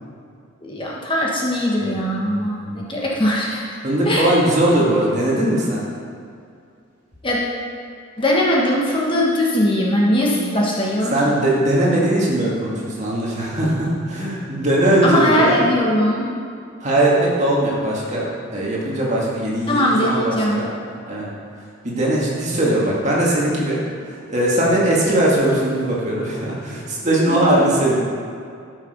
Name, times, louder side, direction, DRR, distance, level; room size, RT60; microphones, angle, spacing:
voice 1, 0.6-3.6 4.1-4.3 7.2-7.4 8.2-11.2 15.0-16.3 19.7-20.6 27.3-27.5, left 1 dB, 25° left, -4 dB, 1.3 m, -20 dB
voice 2, 3.8-5.9 11.1-15.7 16.8-18.3 18.5-20.7 21.1-21.3 21.8-23.8 24.1-28.0, right 1 dB, 35° right, -5 dB, 2.1 m, -19 dB
12.5 x 6.6 x 5.1 m, 2.3 s
head